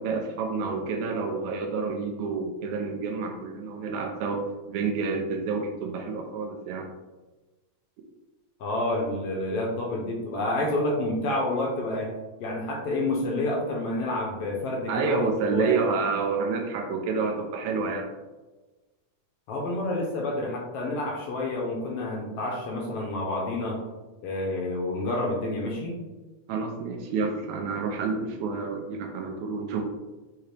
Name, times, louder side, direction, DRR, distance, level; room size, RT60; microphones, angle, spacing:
voice 1, 0.0-4.4 4.7-6.9 14.9-18.1 26.5-29.8, right 4 dB, 85° right, 2 dB, 2.0 m, -29 dB
voice 2, 8.6-12.1 12.4-15.8 19.5-23.8 24.2-26.0, left 2 dB, 75° left, -1 dB, 1.4 m, -29 dB
5.6 x 2.9 x 3.2 m, 1.2 s
omnidirectional pair, 3.3 m